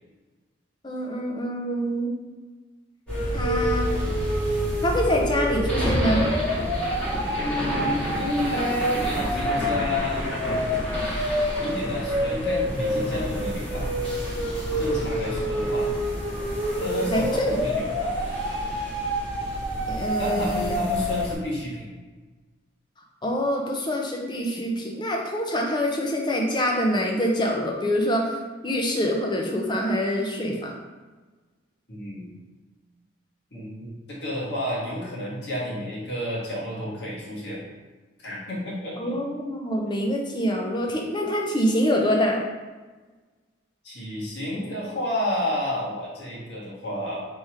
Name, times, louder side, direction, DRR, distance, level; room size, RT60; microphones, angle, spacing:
voice 1, 0.8-2.1 3.3-4.1 4.8-6.2 17.1-17.6 19.9-20.7 23.2-28.3 28.6-30.8 39.0-42.4, equal, 25° left, 0 dB, 0.6 m, -25 dB
sound 1, 3.1-21.3, equal, 5° left, 1.4 m, -26 dB
voice 2, 7.4-10.4 10.9-13.9 14.8-15.9 16.8-18.1 20.2-21.8 31.9-32.3 33.5-37.6 38.2-39.2 43.8-47.3, left 1 dB, 60° left, -6 dB, 1.4 m, -31 dB
3.5 x 2.9 x 4.6 m, 1.3 s
head